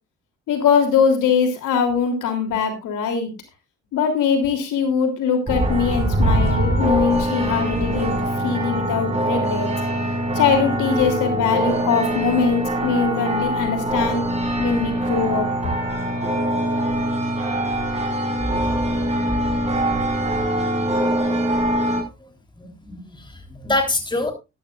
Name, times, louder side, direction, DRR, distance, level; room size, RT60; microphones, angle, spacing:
voice 1, 0.5-3.3 3.9-9.7 10.3-14.2 14.6-15.5, left 6 dB, 85° left, 5 dB, 3.2 m, -22 dB
sound 1, 5.5-22.0, right 1 dB, 20° right, 5.5 m, -23 dB
voice 2, 22.6-24.3, left 2 dB, 15° left, 5 dB, 3.5 m, -25 dB
13.5 x 12.0 x 2.5 m, 0.25 s
cardioid pair, 90°, 30 cm